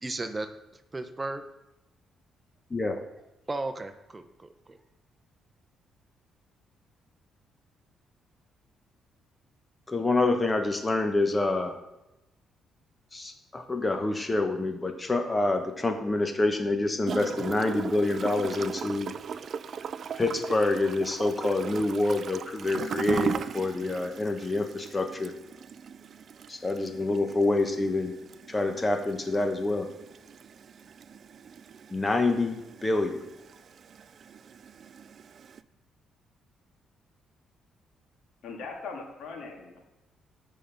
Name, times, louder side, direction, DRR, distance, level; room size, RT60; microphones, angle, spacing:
voice 1, 0.0-1.4 3.5-4.8, right 2 dB, 20° right, 7 dB, 0.8 m, -35 dB
voice 2, 2.7-3.0 9.9-11.7 13.1-19.1 20.1-25.3 26.5-28.1 28.5-29.9 31.9-33.2, left 2 dB, 20° left, 6 dB, 1.1 m, -27 dB
Gurgling / Toilet flush, 17.1-35.6, right 7 dB, 55° right, 0.3 m, -39 dB
voice 3, 38.4-39.8, left 4 dB, 75° left, 1 dB, 1.9 m, -40 dB
7.5 x 5.2 x 5.7 m, 0.96 s
cardioid pair, 90°, 0 cm